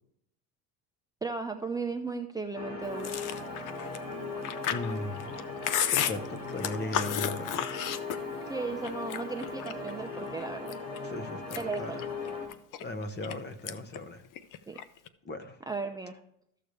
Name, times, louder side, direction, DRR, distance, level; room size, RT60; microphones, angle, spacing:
voice 1, 1.2-3.2 8.5-10.8 11.6-12.0 14.7-14.8 15.7-16.2, right 4 dB, 10° right, 3 dB, 0.5 m, -36 dB
sound 1, 2.5-12.5, left 3 dB, 70° left, 3.0 m, -38 dB
Chewing mastication, 3.0-8.5 8.8-9.9 10.4-11.0 11.3-13.3 13.7-14.0 14.3-15.1, left 10 dB, 50° left, 0.7 m, -33 dB
voice 2, 4.7-5.4 5.9-7.7 11.0-12.0 12.8-14.2 15.2-15.6, left 2 dB, 25° left, 10 dB, 0.9 m, -37 dB
13.5 x 6.8 x 3.2 m, 0.72 s
supercardioid pair, 105°, 42 cm